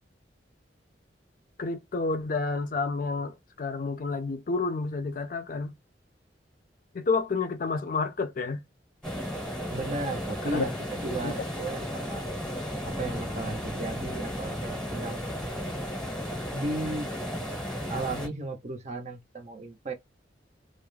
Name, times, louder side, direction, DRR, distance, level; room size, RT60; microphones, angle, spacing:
voice 1, 1.6-5.7 6.9-8.6 10.4-10.6 11.0-11.3, left 4 dB, 50° left, 0.4 m, -30 dB
sound 1, 9.0-18.3, equal, 5° left, 0.8 m, -34 dB
voice 2, 9.7-12.3 12.8-15.3 16.5-17.1 17.9-19.9, right 2 dB, 40° right, 0.6 m, -35 dB
2.3 x 2.0 x 3.1 m
head